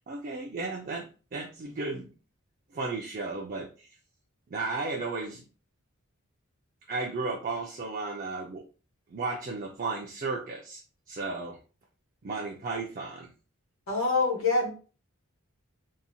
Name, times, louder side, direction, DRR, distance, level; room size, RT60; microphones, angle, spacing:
voice 1, 0.0-2.1 2.7-3.9 4.5-5.4 6.9-8.7 9.1-10.8 11.1-11.6 12.2-13.3, right 3 dB, 40° right, 0 dB, 0.3 m, -34 dB
voice 2, 13.9-14.7, left 3 dB, 70° left, -1 dB, 1.0 m, -25 dB
2.8 x 2.0 x 2.6 m, 0.36 s
head